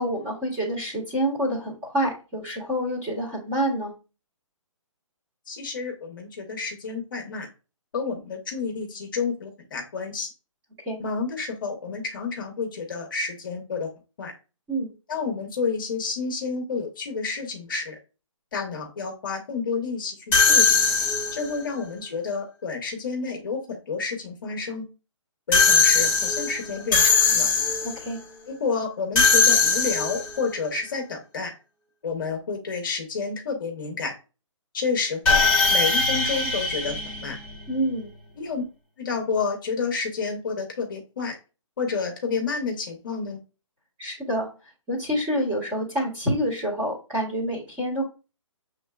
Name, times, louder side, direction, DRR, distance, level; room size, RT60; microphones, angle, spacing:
voice 1, 0.0-3.9 10.8-11.0 14.7-14.9 27.9-28.2 37.7-38.1 44.0-44.5 44.9-48.0, equal, 10° right, -5 dB, 1.5 m, -27 dB
voice 2, 5.5-7.5 7.9-10.3 11.0-13.9 14.2-14.3 15.1-18.0 18.5-20.2 20.5-20.7 21.3-24.8 25.5-27.5 28.5-31.5 32.0-34.1 34.7-35.4 35.7-36.9 37.2-37.4 38.4-38.6 39.0-41.4 41.8-43.4, left 5 dB, 40° left, 2 dB, 1.0 m, -30 dB
sound 1, 20.3-21.6 25.5-28.0 29.1-30.4 35.2-37.8, left 4 dB, 10° left, 1.0 m, -21 dB
7.1 x 3.2 x 2.3 m, 0.31 s
hypercardioid pair, 170°, 17 cm